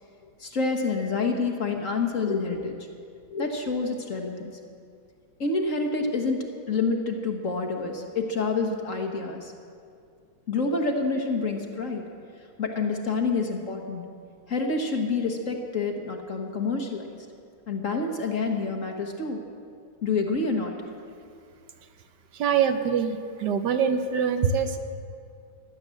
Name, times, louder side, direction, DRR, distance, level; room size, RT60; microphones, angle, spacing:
voice 1, 0.4-2.9 3.3-4.5 5.4-9.5 10.5-12.0 12.6-14.0 14.5-17.1 17.7-19.4 20.0-20.7, left 4 dB, 40° left, 3 dB, 1.5 m, -28 dB
voice 2, 22.3-24.8, right 7 dB, 65° right, 8 dB, 1.2 m, -24 dB
16.0 x 11.5 x 7.6 m, 2.3 s
omnidirectional pair, 2.3 m